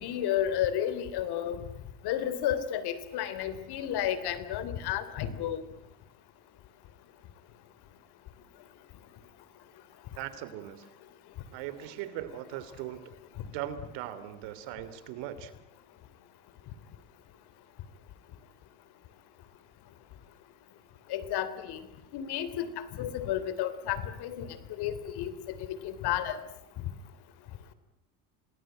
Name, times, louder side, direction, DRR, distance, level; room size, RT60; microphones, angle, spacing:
voice 1, 0.0-1.6 2.0-5.6 21.1-21.8 22.1-26.4, left 10 dB, 65° left, 14 dB, 3.3 m, -32 dB
voice 2, 10.2-10.9 11.5-13.1 13.5-15.5, right 12 dB, 80° right, 13 dB, 3.1 m, -39 dB
28.5 x 20.0 x 8.9 m, 0.84 s
supercardioid pair, 105°, 41 cm